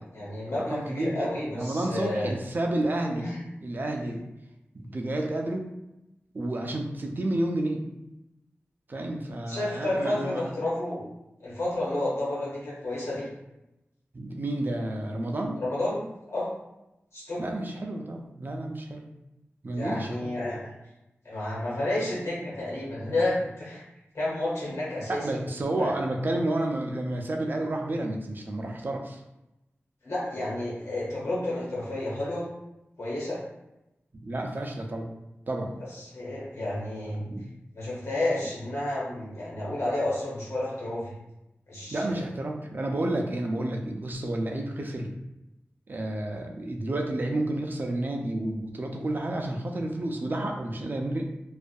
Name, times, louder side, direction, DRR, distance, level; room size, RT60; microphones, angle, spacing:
voice 1, 0.0-2.3 3.1-3.4 9.5-11.0 11.4-13.3 15.6-16.5 17.1-17.4 19.7-20.7 21.2-23.8 24.1-25.3 25.7-25.9 30.0-32.5 33.0-33.4 36.0-37.2 37.7-41.1 41.7-42.2, left 1 dB, 80° left, -7 dB, 1.1 m, -31 dB
voice 2, 0.5-3.3 3.6-4.2 4.7-5.7 6.3-7.8 8.9-10.4 14.1-15.6 17.4-19.1 19.6-20.4 25.1-29.2 34.1-35.1 35.5-35.8 37.2-37.5 41.9-45.2 45.9-51.2, right 1 dB, 45° right, 2 dB, 0.4 m, -30 dB
2.6 x 2.4 x 2.2 m, 0.92 s
wide cardioid pair, 85°, 5 cm